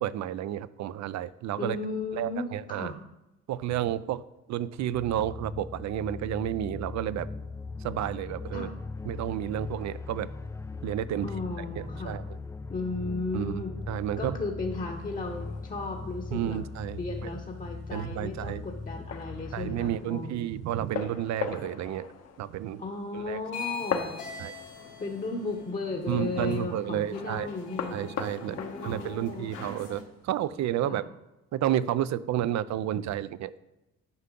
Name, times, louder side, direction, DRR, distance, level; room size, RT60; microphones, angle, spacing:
voice 1, 0.0-1.8 2.1-2.9 3.5-4.2 4.5-7.3 7.8-8.7 9.0-10.3 10.8-11.3 12.0-12.2 13.3-13.5 13.9-14.4 16.3-17.3 17.9-18.6 19.5-22.1 22.4-22.8 23.1-23.4 24.4-24.5 26.1-27.5 27.9-28.6 28.8-31.0 31.5-33.5, right 11 dB, 65° right, 17 dB, 0.5 m, -31 dB
voice 2, 1.6-3.0 8.5-8.7 11.2-12.2 12.7-13.8 14.2-16.6 17.0-20.4 22.8-24.1 25.0-28.1 28.5-29.5 30.8-31.0, left 3 dB, 30° left, 2 dB, 0.9 m, -35 dB
sound 1, 4.9-20.0, left 3 dB, 10° left, 0.3 m, -39 dB
sound 2, 14.7-30.5, left 6 dB, 60° left, 1.0 m, -42 dB
sound 3, 23.5-30.0, left 5 dB, 80° left, 1.8 m, -42 dB
9.7 x 5.6 x 3.7 m, 0.99 s
cardioid pair, 90°, 30 cm